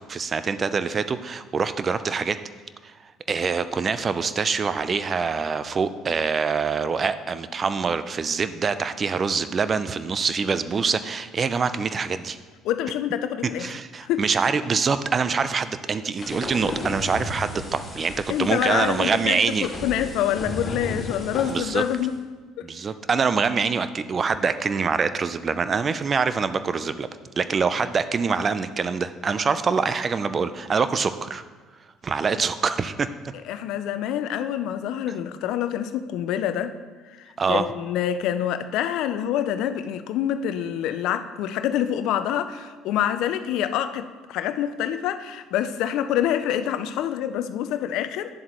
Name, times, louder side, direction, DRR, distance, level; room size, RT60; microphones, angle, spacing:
voice 1, 0.0-2.4 2.8-2.9 3.3-12.4 13.6-19.7 21.5-21.8 22.6-27.1 27.4-31.4 32.0-33.1 37.4-37.6, right 5 dB, 35° right, 12 dB, 0.5 m, -25 dB
voice 2, 12.6-13.7 14.0-14.2 18.3-22.2 22.6-22.7 33.4-36.8 37.2-48.3, left 10 dB, 65° left, 11 dB, 0.5 m, -26 dB
sound 1, 16.2-22.1, left 1 dB, 25° left, 2.5 m, -35 dB
10.0 x 7.3 x 3.0 m, 1.5 s
hypercardioid pair, 65°, 0 cm